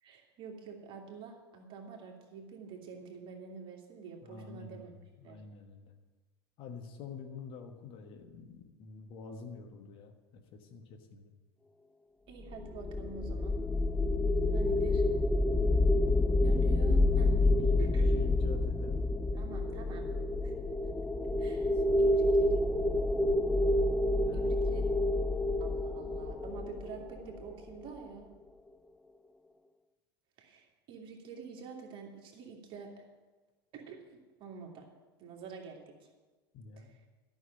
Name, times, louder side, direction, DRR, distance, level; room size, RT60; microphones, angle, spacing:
voice 1, 0.0-4.9 5.2-5.4 12.3-13.6 14.5-15.0 16.4-17.3 17.8-18.0 19.3-20.0 20.4-20.5 21.4-22.6 24.3-24.9 25.6-28.3 30.4-33.1 33.7-34.9 35.2-36.1 36.8-37.0, right 5 dB, 40° right, 1 dB, 2.4 m, -47 dB
voice 2, 4.2-5.9 6.6-11.3 17.3-19.1 21.5-22.2 24.2-24.8 36.5-36.9, left 5 dB, 45° left, 5 dB, 1.4 m, -47 dB
sound 1, 12.5-27.7, left 2 dB, 5° left, 0.4 m, -28 dB
12.5 x 6.5 x 9.0 m, 1.2 s
figure-of-eight pair, 75°, 13 cm